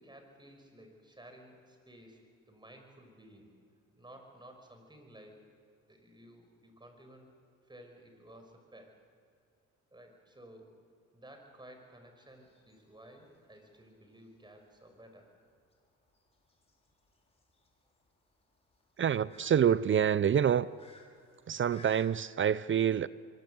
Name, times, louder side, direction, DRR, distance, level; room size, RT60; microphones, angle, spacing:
voice 1, 0.0-3.5 4.0-5.4 5.9-7.3 7.7-9.0 9.9-10.7 11.1-15.3 21.3-21.4, right 1 dB, 15° right, 5.7 m, -55 dB
sound 1, 12.3-22.1, left 3 dB, 20° left, 5.4 m, -61 dB
voice 2, 19.0-20.7 21.5-23.1, right 8 dB, 40° right, 0.6 m, -27 dB
25.0 x 24.0 x 7.9 m
cardioid pair, 90°, 30 cm